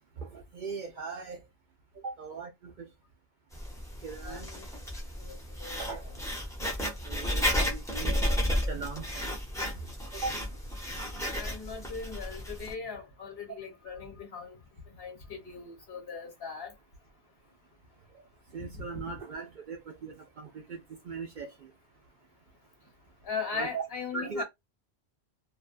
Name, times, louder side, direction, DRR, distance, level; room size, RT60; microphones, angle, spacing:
voice 1, 0.2-1.4 2.0-2.5 2.8-2.9 4.0-4.5 5.8-6.0 7.1-9.3 10.1-10.4 18.5-20.8 21.1-21.5 23.5-23.8 24.1-24.4, right 4 dB, 55° right, 0.6 m, -39 dB
Writing, 3.5-12.7, left 1 dB, 5° left, 0.6 m, -33 dB
voice 2, 4.2-4.6 5.3-5.4 5.6-5.8 11.4-14.6 15.0-16.7 23.2-24.4, left 5 dB, 65° left, 1.3 m, -39 dB
2.5 x 2.2 x 2.5 m
omnidirectional pair, 1.1 m